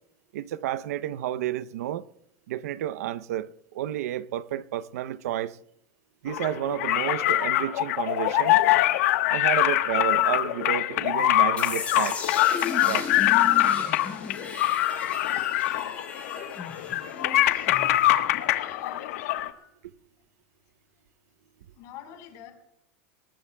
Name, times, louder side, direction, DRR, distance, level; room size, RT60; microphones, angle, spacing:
voice 1, 0.3-2.0 2.5-5.6 6.2-8.6 9.3-12.2 12.8-13.1, right 12 dB, 80° right, 0.7 m, -31 dB
sound 1, 6.3-19.5, left 14 dB, 70° left, 1.2 m, -24 dB
sound 2, 11.6-18.4, left 4 dB, 15° left, 4.8 m, -36 dB
voice 2, 17.4-19.3 21.7-22.5, left 10 dB, 45° left, 4.3 m, -47 dB
22.5 x 19.0 x 2.3 m
supercardioid pair, 155°, 8 cm